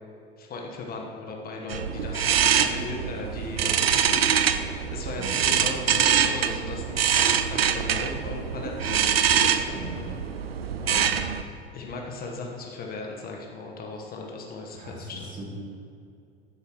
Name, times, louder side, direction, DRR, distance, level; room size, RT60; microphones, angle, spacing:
voice 1, 0.4-9.8 10.8-11.1 11.7-15.3, left 3 dB, 30° left, 0 dB, 1.4 m, -37 dB
sound 1, 1.7-11.4, right 8 dB, 75° right, 0.6 m, -24 dB
voice 2, 5.2-5.5 9.7-10.0 10.9-11.2 14.7-15.5, right 1 dB, 25° right, -2 dB, 2.4 m, -40 dB
12.0 x 10.5 x 3.1 m, 2.5 s
figure-of-eight pair, 80°, 30 cm